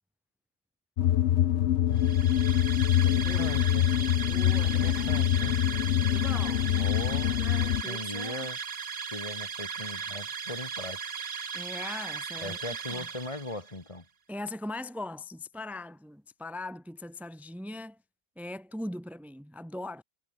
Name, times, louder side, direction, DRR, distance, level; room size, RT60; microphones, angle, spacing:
sound 1, 1.0-7.8, left 12 dB, 85° left, 1.0 m, -25 dB
voice 1, 1.9-3.9 4.7-5.6 6.7-7.4 7.9-8.6 9.1-11.1 12.4-14.1, left 2 dB, 30° left, 1.9 m, -39 dB
sound 2, 1.9-13.8, right 6 dB, 60° right, 1.4 m, -37 dB
voice 2, 3.2-3.6 4.2-5.2 5.8-6.9 7.4-8.5 11.5-12.6 12.9-13.1 14.3-18.0 18.4-20.0, left 2 dB, ahead, 1.3 m, -40 dB
omnidirectional pair, 1.1 m